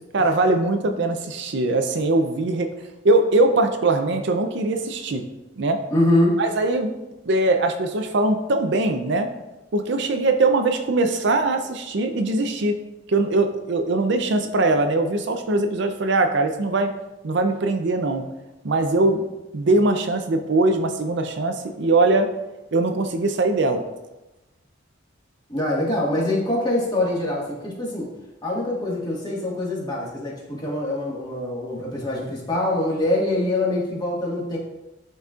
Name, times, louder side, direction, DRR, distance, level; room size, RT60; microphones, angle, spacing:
voice 1, 0.1-2.7 3.0-5.2 5.6-5.8 6.4-6.9 7.3-9.3 9.7-12.7 13.1-16.9 17.2-18.2 18.6-19.2 19.5-22.3 22.7-23.8, right 2 dB, 65° right, 6 dB, 0.5 m, -21 dB
voice 2, 5.9-6.4 25.5-28.1 28.4-34.6, left 1 dB, 20° left, -4 dB, 1.6 m, -24 dB
10.0 x 4.1 x 2.4 m, 0.98 s
head